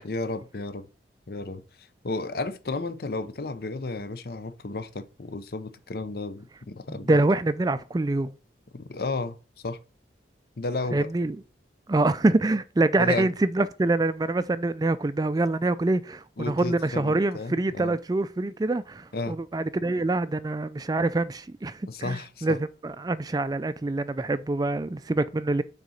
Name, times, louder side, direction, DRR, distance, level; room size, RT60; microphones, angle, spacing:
voice 1, 0.0-0.9 1.3-1.6 2.0-7.2 8.7-9.4 9.6-9.8 10.6-11.1 13.0-13.3 16.4-18.0 19.1-19.4 21.9-22.6, left 3 dB, 60° left, 0.7 m, -33 dB
voice 2, 6.9-8.3 10.9-11.4 11.9-25.6, right 2 dB, 20° right, 0.3 m, -25 dB
6.6 x 4.1 x 6.4 m
head